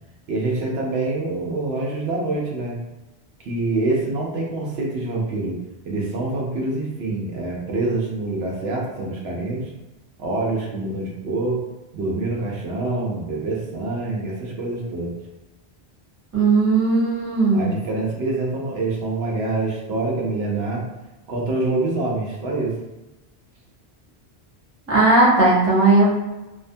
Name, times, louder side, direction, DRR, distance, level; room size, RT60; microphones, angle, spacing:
voice 1, 0.3-2.8 3.4-5.6 5.8-9.7 10.2-11.6 11.9-15.1 17.5-20.8 21.3-22.7, right 2 dB, 75° right, -2 dB, 0.9 m, -25 dB
voice 2, 16.3-17.7 24.9-26.1, right 3 dB, 15° right, -7 dB, 0.6 m, -17 dB
2.6 x 2.1 x 2.5 m, 1.1 s
omnidirectional pair, 1.1 m